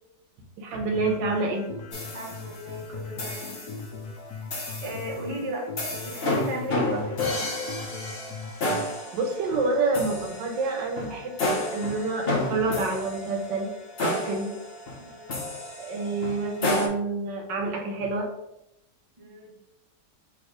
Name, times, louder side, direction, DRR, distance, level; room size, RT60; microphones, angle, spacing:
voice 1, 0.6-1.7 9.1-11.4 11.7-13.7 14.0-14.5 15.8-18.3, right 3 dB, 75° right, 2 dB, 1.4 m, -28 dB
sound 1, 0.9-8.9, left 4 dB, 70° left, 1.1 m, -40 dB
sound 2, 1.9-2.7 3.2-3.8 4.5-5.1 5.8-16.9, left 1 dB, 45° left, 0.8 m, -31 dB
voice 2, 2.1-3.7 4.8-5.7 6.0-7.5 15.0-15.4 19.2-19.5, right 1 dB, 25° right, -3 dB, 0.7 m, -35 dB
3.5 x 2.9 x 4.8 m, 0.84 s
omnidirectional pair, 2.0 m